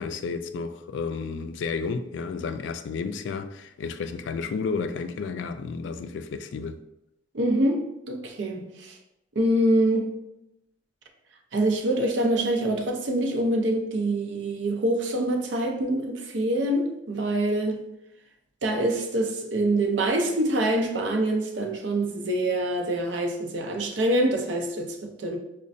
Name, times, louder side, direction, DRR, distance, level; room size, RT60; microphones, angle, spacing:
voice 1, 0.0-6.8, left 5 dB, 75° left, 0.3 m, -32 dB
voice 2, 7.3-9.0 9.3-10.0 11.5-17.8 18.6-25.4, right 1 dB, 80° right, 0.6 m, -25 dB
5.0 x 2.2 x 2.6 m
head